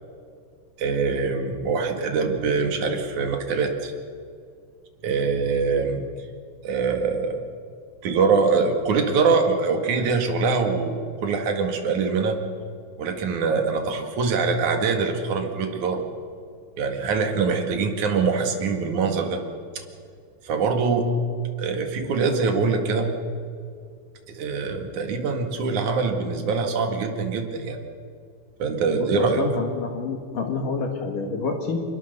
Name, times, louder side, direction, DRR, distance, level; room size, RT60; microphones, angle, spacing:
voice 1, 0.8-3.9 5.0-6.0 6.6-7.4 8.0-12.4 13.0-16.0 16.8-19.4 20.4-21.1 21.6-23.1 24.3-27.8 28.6-29.5, right 4 dB, 50° right, 4 dB, 2.6 m, -23 dB
voice 2, 28.9-31.8, left 4 dB, 55° left, 3 dB, 2.7 m, -28 dB
25.0 x 22.0 x 6.8 m, 2.3 s
omnidirectional pair, 5.6 m